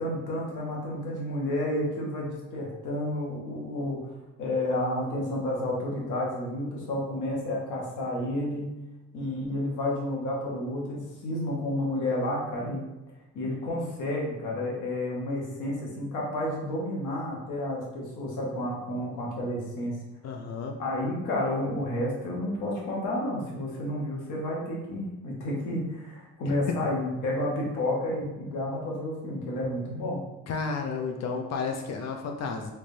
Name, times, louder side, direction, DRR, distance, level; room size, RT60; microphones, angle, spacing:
voice 1, 0.0-4.1 4.4-8.6 9.1-12.8 13.3-20.0 20.8-30.2, left 1 dB, 85° left, -3 dB, 1.1 m, -31 dB
voice 2, 20.2-20.8 26.4-26.8 30.5-32.7, left 5 dB, 60° left, 3 dB, 0.5 m, -32 dB
3.3 x 3.1 x 2.6 m, 1.0 s
cardioid pair, 90°, 30 cm